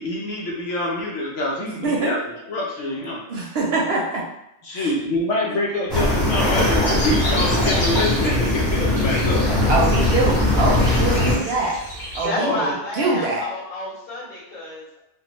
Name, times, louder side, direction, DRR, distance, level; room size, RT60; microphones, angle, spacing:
voice 1, 0.0-3.2 4.6-9.6 12.4-12.8, left 1 dB, 70° left, -3 dB, 1.0 m, -26 dB
voice 2, 1.6-2.1 3.3-4.2 4.7-4.9 9.7-11.8 12.1-13.5, right 2 dB, 65° right, -2 dB, 0.7 m, -24 dB
sound 1, 5.9-11.4, left 1 dB, ahead, 0.8 m, -20 dB
sound 2, 6.8-12.3, equal, 25° left, 1.5 m, -32 dB
voice 3, 12.2-15.0, left 1 dB, 50° left, -9 dB, 1.8 m, -30 dB
3.4 x 2.1 x 2.9 m, 0.84 s
omnidirectional pair, 1.3 m